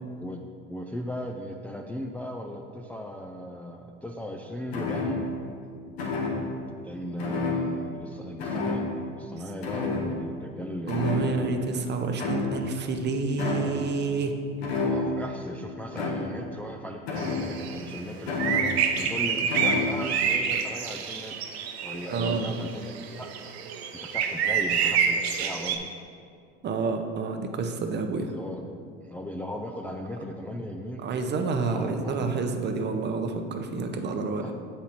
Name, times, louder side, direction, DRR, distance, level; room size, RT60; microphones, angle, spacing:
voice 1, 0.7-5.3 6.8-8.9 9.2-11.6 14.8-25.9 28.3-28.6 29.0-31.0 31.7-32.3 34.4-34.5, left 1 dB, 5° left, 1 dB, 0.3 m, -37 dB
sound 1, 4.7-5.4 6.0-6.6 7.2-8.1 8.4-9.1 9.6-10.5 10.9-11.6 12.2-12.8 13.4-13.9 14.6-15.3 15.9-16.5 17.1-17.7 18.3-19.0 19.5-20.0, left 3 dB, 90° left, 1.2 m, -29 dB
voice 2, 10.9-14.3 22.1-22.5 26.6-28.3 31.0-34.4, right 4 dB, 35° right, 6 dB, 0.7 m, -29 dB
sound 2, 17.2-25.8, right 7 dB, 85° right, 0.6 m, -28 dB
7.1 x 4.3 x 4.1 m, 2.3 s
hypercardioid pair, 85°, 31 cm